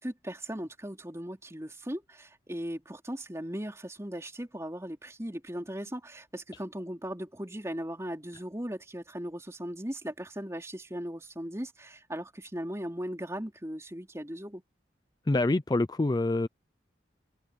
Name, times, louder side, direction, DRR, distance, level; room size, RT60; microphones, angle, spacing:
voice 1, 0.0-14.6, equal, 15° right, 3.5 m, -38 dB
voice 2, 15.3-16.5, left 2 dB, 25° left, 0.4 m, -26 dB
head